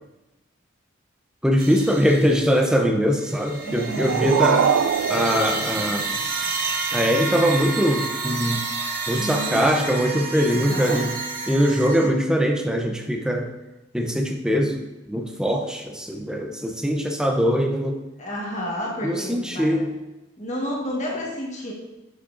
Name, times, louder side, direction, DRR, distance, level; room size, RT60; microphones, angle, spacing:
voice 1, 1.4-4.7 5.1-6.1 6.9-8.6 9.1-11.2 11.5-13.5 13.9-18.0 19.0-19.9, equal, 5° right, 3 dB, 0.5 m, -22 dB
sound 1, 1.6-2.8 3.2-12.1, right 4 dB, 45° right, 0.8 m, -30 dB
sound 2, 3.5-6.5, right 7 dB, 85° right, 0.3 m, -24 dB
voice 2, 3.6-4.3 6.0-6.4 9.1-9.7 10.5-11.0 12.0-12.1 18.2-19.8 20.4-21.7, equal, 35° left, -3 dB, 1.4 m, -31 dB
7.8 x 6.3 x 2.5 m, 1.0 s
head